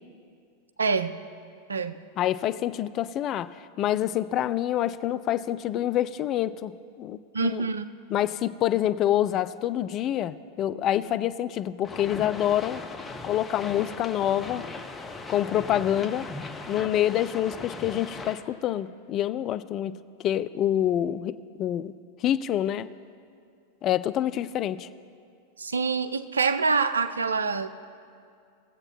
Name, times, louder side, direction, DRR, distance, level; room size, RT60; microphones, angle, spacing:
voice 1, 0.8-1.2 1.7-1.9 7.3-7.9 25.6-27.7, right 4 dB, 80° right, 12 dB, 0.4 m, -26 dB
voice 2, 2.2-6.7 7.0-7.6 8.1-12.8 13.2-14.7 15.3-16.3 16.7-19.9 20.2-21.9 22.2-22.9 23.8-24.9, left 11 dB, 40° left, 14 dB, 0.3 m, -27 dB
sound 1, 11.8-18.4, left 3 dB, 20° left, 0.9 m, -39 dB
19.0 x 7.8 x 2.9 m, 2.4 s
figure-of-eight pair, 90°, 0 cm